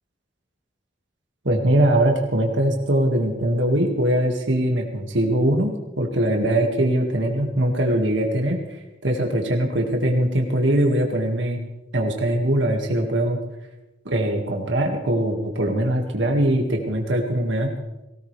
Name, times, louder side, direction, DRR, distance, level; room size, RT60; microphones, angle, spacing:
voice 1, 1.4-8.6 9.0-11.6 11.9-13.4 14.1-17.7, right 1 dB, 75° right, 2 dB, 2.1 m, -21 dB
19.0 x 17.0 x 3.4 m, 1.0 s
head